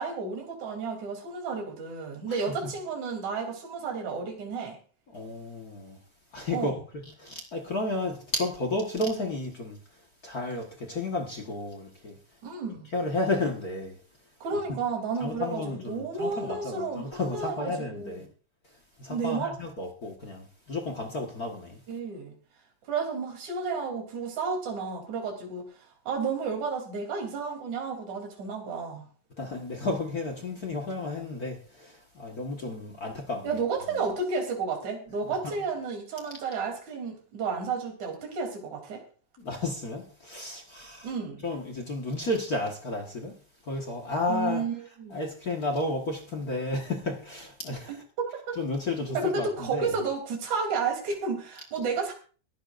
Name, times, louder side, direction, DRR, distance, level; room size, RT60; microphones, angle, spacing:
voice 1, 0.0-4.8 6.5-6.8 12.4-12.9 14.4-18.2 19.1-19.5 21.9-22.4 22.9-29.1 33.4-39.0 41.0-41.4 44.3-45.2 47.9-48.6 49.1-52.1, right 4 dB, 55° right, 4.5 m, -32 dB
voice 2, 5.1-6.0 6.3-6.7 7.2-9.8 10.2-12.2 12.9-14.0 15.2-18.3 19.0-21.8 29.4-33.5 35.4-35.5 39.4-41.1 41.4-43.4 43.7-44.6 45.1-47.9 48.6-49.9, left 2 dB, 50° left, 1.0 m, -32 dB
23.5 x 12.0 x 2.6 m
omnidirectional pair, 4.1 m